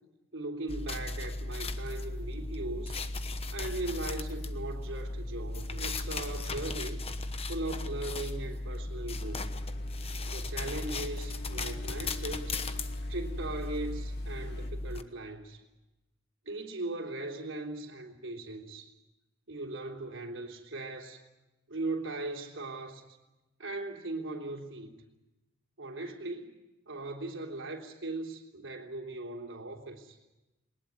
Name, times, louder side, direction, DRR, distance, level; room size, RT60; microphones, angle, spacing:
voice 1, 0.3-3.0 3.5-7.0 7.5-9.4 10.3-12.6 13.1-15.6 16.5-18.9 19.5-21.2 21.7-23.0 23.6-24.9 25.8-26.5 26.9-30.2, right 2 dB, 70° right, 2 dB, 3.5 m, -39 dB
sound 1, 0.7-15.0, left 2 dB, 30° left, 1.1 m, -36 dB
sound 2, 9.2-14.7, left 4 dB, 55° left, 1.9 m, -51 dB
21.5 x 19.5 x 9.6 m, 1.0 s
head